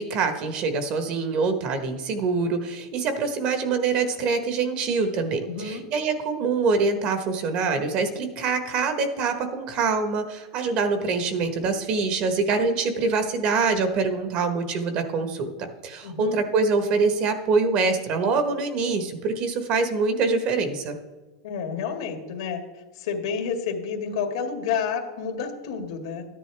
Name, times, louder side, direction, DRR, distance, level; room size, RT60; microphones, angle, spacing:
voice 1, 0.0-21.0, right 4 dB, 40° right, 8 dB, 1.3 m, -25 dB
voice 2, 5.5-5.8 16.0-16.4 21.4-22.6 22.9-26.3, left 6 dB, 80° left, 4 dB, 1.9 m, -30 dB
13.0 x 9.9 x 3.4 m, 1.2 s
supercardioid pair, 150°, 3 cm